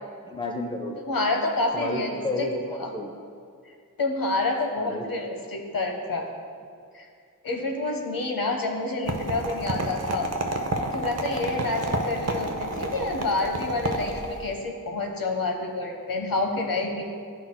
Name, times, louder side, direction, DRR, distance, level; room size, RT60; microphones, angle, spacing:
voice 1, 0.3-1.1 1.7-3.2 4.8-5.0, left 1 dB, 15° left, 3 dB, 0.6 m, -31 dB
voice 2, 1.1-2.1 2.4-2.5 2.8-2.9 4.0-6.3 6.9-7.1 7.4-10.3 10.9-17.0, left 2 dB, 75° left, 2 dB, 0.9 m, -28 dB
sound 1, 9.1-14.5, right 1 dB, 45° right, 0.6 m, -30 dB
10.5 x 5.9 x 2.2 m, 2.2 s
wide cardioid pair, 55°, 35 cm